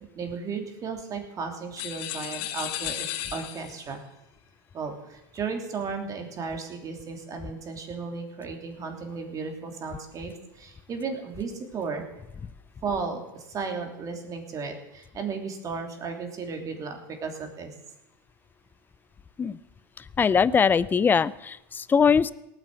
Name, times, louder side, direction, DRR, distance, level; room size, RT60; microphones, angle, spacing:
voice 1, 0.1-4.0 4.7-12.1 12.8-17.7, right 5 dB, 30° right, 3 dB, 3.2 m, -34 dB
sound 1, 1.8-3.9, left 13 dB, 55° left, 1.3 m, -34 dB
voice 2, 20.2-22.3, left 6 dB, 15° left, 18 dB, 0.5 m, -21 dB
18.0 x 9.2 x 7.8 m, 0.91 s
supercardioid pair, 120°, 12 cm